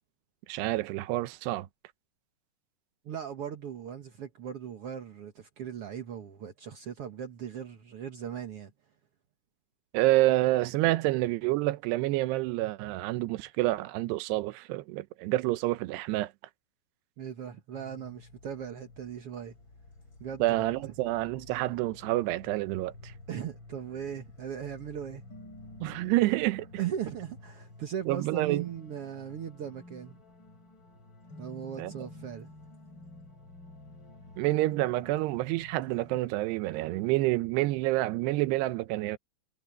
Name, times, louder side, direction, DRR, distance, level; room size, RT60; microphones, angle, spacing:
voice 1, 0.5-1.7 9.9-16.3 20.4-23.1 25.8-26.7 28.1-28.6 31.8-31.9 34.4-39.2, right 17 dB, 85° right, 3.0 m, -28 dB
voice 2, 3.0-8.7 17.2-19.6 20.2-20.9 23.3-25.2 26.8-30.2 31.4-32.5, right 9 dB, 65° right, 1.5 m, -38 dB
sound 1, 17.7-36.2, left 2 dB, 30° left, 5.1 m, -51 dB
omnidirectional pair, 4.7 m